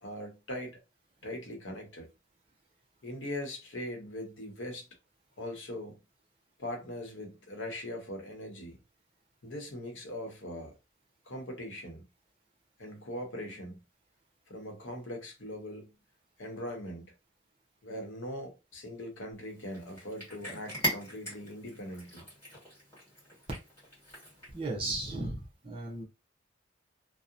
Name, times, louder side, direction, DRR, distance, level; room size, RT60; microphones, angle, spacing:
voice 1, 0.0-0.8 1.2-2.1 3.0-4.9 5.4-6.0 6.6-8.8 9.4-10.7 11.3-12.0 12.8-13.8 14.5-15.9 16.4-17.1 17.8-22.3, left 1 dB, 80° left, 0.8 m, -41 dB
Cat, 19.5-24.7, right 1 dB, 15° left, 1.5 m, -40 dB
voice 2, 24.5-26.0, right 2 dB, 30° right, 0.6 m, -35 dB
2.7 x 2.1 x 2.4 m
head